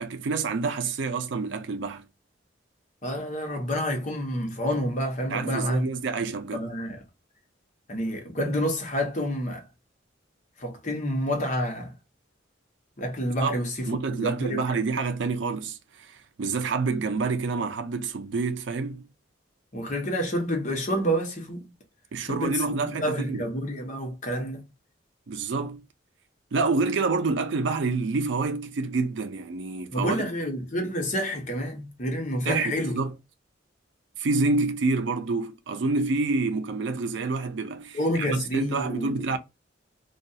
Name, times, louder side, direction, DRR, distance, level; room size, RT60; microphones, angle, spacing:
voice 1, 0.0-2.0 5.3-6.7 13.4-13.6 13.9-19.0 22.1-23.4 25.3-25.8 26.5-30.2 32.5-33.1 34.2-39.4, right 3 dB, 75° right, 0.4 m, -28 dB
voice 2, 3.0-5.9 6.5-7.0 7.9-9.6 10.6-11.9 13.0-14.7 19.7-21.7 22.3-24.6 29.9-33.0 37.9-39.2, equal, 40° left, 0.8 m, -29 dB
2.4 x 2.3 x 2.6 m
head